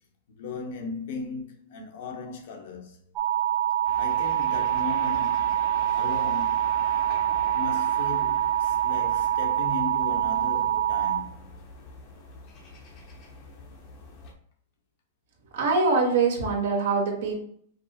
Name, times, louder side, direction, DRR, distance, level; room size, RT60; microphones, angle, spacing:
voice 1, 0.3-3.0 3.9-6.8 7.5-11.6, left 4 dB, 60° left, 0.9 m, -37 dB
sound 1, 3.2-11.2, right 11 dB, 30° right, 0.6 m, -25 dB
sound 2, 3.8-14.3, left 3 dB, 35° left, 0.8 m, -44 dB
voice 2, 15.5-17.4, right 4 dB, 65° right, 1.4 m, -23 dB
5.2 x 2.0 x 4.1 m
supercardioid pair, 160°, 0 cm